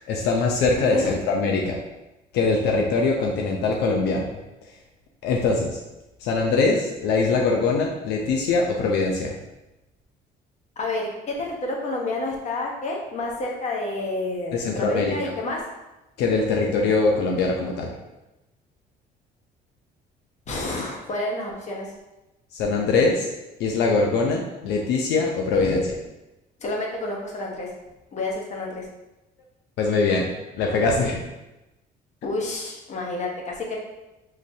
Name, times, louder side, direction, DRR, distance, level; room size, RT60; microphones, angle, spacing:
voice 1, 0.1-1.8 2.3-4.4 5.2-5.8 6.2-9.3 14.5-15.3 16.2-17.9 22.5-23.3 23.6-26.0 29.8-30.3 30.6-31.1, left 3 dB, 85° left, 0 dB, 0.6 m, -22 dB
voice 2, 10.8-15.6 20.5-21.9 25.5-26.0 26.6-27.7 28.1-28.9 31.1-31.2 32.2-33.8, left 2 dB, 45° left, -1 dB, 1.2 m, -29 dB
5.8 x 3.1 x 2.7 m, 0.99 s
cardioid pair, 110°, 17 cm